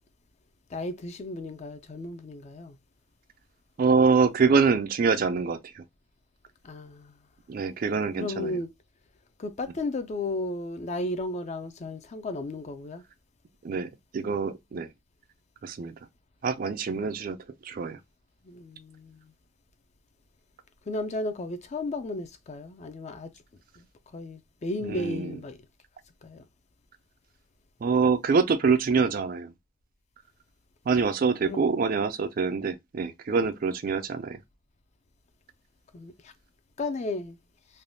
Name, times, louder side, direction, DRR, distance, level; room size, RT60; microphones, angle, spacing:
voice 1, 0.7-2.8 6.6-7.2 8.2-8.7 9.4-13.0 18.4-19.2 20.9-23.3 23.8-23.9 24.1-25.6 26.2-26.4 31.5-31.7 35.9-36.3 36.8-37.4, left 2 dB, 35° left, 0.4 m, -34 dB
voice 2, 3.8-5.8 7.5-8.6 13.6-14.9 15.6-15.9 16.4-17.4 17.6-18.0 24.8-25.4 27.8-29.5 30.9-34.4, right 5 dB, 45° right, 0.3 m, -25 dB
3.3 x 2.2 x 2.5 m
head